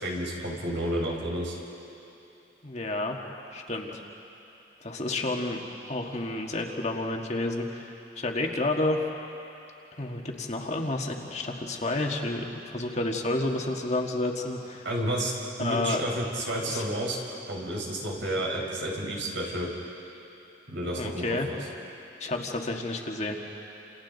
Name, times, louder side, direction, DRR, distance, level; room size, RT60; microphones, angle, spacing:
voice 1, 0.0-1.6 14.8-15.3 15.6-17.2 17.5-19.7 20.7-21.6, right 1 dB, 80° right, -1 dB, 4.8 m, -31 dB
voice 2, 2.6-3.2 3.5-4.0 4.8-5.6 5.9-9.0 10.0-14.8 15.6-16.0 16.6-16.8 20.9-21.5 22.2-23.4, left 2 dB, 35° left, 1 dB, 1.7 m, -30 dB
29.0 x 28.0 x 4.1 m, 2.9 s
head